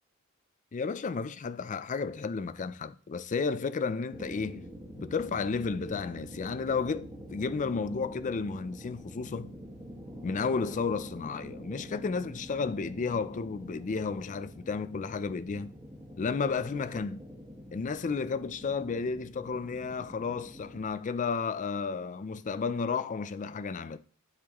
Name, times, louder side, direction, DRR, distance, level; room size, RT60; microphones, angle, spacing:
voice 1, 0.7-4.7 5.0-9.5 10.2-15.7 16.2-17.2 17.7-24.0, left 5 dB, 35° left, 0.4 m, -32 dB
sound 1, 4.1-20.8, equal, 20° right, 1.7 m, -46 dB
12.0 x 4.1 x 3.0 m
head